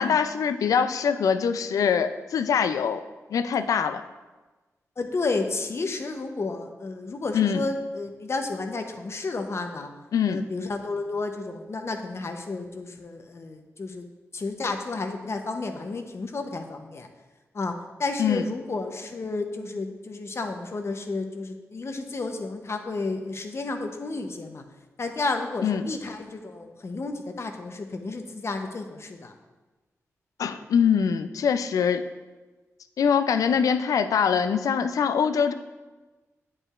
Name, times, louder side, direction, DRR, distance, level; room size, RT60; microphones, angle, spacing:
voice 1, 0.0-3.0 3.3-4.0 7.3-7.6 10.1-10.4 18.2-18.5 25.6-25.9 30.4-32.0 33.0-35.5, left 7 dB, 85° left, 10 dB, 0.3 m, -23 dB
voice 2, 5.0-9.9 10.3-17.1 17.5-24.6 25.0-29.3, left 3 dB, 50° left, 5 dB, 0.7 m, -32 dB
9.4 x 5.4 x 2.4 m, 1.2 s
cardioid pair, 60°, 6 cm